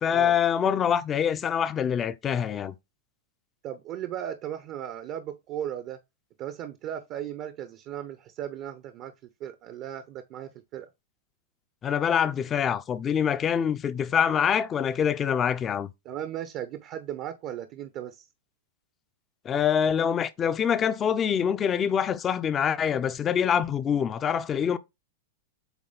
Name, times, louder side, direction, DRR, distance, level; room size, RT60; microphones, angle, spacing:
voice 1, 0.0-2.7 11.8-15.9 19.4-24.8, left 8 dB, 25° left, 0.6 m, -25 dB
voice 2, 3.6-6.0 6.4-9.1 9.4-10.9 16.0-18.2, right 10 dB, 45° right, 0.8 m, -36 dB
8.1 x 3.0 x 4.0 m
hypercardioid pair, 105°, 0 cm